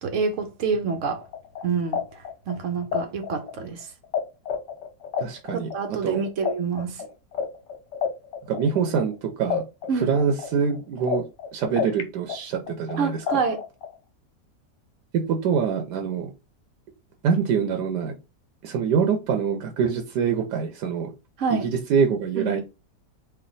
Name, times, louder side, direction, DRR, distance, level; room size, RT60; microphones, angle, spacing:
voice 1, 0.0-1.2 1.6-2.0 2.5-3.9 5.5-7.0 9.9-10.1 13.0-13.6 21.4-21.7 22.4-22.6, right 5 dB, 60° right, 0.9 m, -27 dB
sound 1, 1.2-4.2 4.5-9.1 9.5-12.0 12.3-13.9, left 8 dB, 85° left, 1.4 m, -30 dB
voice 2, 5.2-5.7 6.0-6.2 8.5-9.6 9.9-11.2 11.5-13.4 15.3-16.3 17.2-18.1 18.6-21.1 21.5-22.6, right 6 dB, 80° right, 1.2 m, -25 dB
3.3 x 2.6 x 3.8 m
omnidirectional pair, 1.9 m